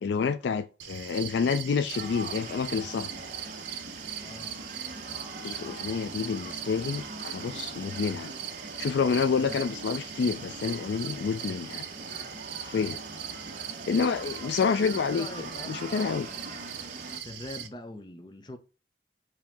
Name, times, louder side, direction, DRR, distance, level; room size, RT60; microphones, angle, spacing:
voice 1, 0.0-3.1 5.4-8.3 8.8-11.8 12.6-13.0 13.9-16.3, left 5 dB, 75° left, 0.3 m, -28 dB
sound 1, 0.8-17.7, right 10 dB, 85° right, 0.7 m, -40 dB
sound 2, 1.9-17.2, right 2 dB, 45° right, 0.9 m, -43 dB
voice 2, 4.2-4.6 9.4-9.6 11.4-11.7 14.4-16.6 17.2-18.6, left 2 dB, 25° left, 0.6 m, -43 dB
4.8 x 2.8 x 3.4 m
head